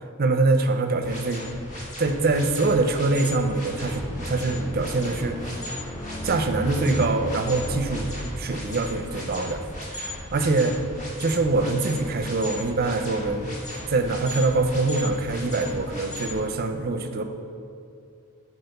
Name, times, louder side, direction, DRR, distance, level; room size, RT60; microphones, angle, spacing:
voice 1, 0.2-1.4 2.0-5.6 6.2-10.8 11.2-13.6 13.9-17.2, right 3 dB, 45° right, 7 dB, 0.5 m, -24 dB
sound 1, 1.0-16.3, left 1 dB, 35° left, 1.9 m, -37 dB
sound 2, 3.7-10.3, equal, 20° left, 0.9 m, -35 dB
6.8 x 4.1 x 6.5 m, 2.5 s
head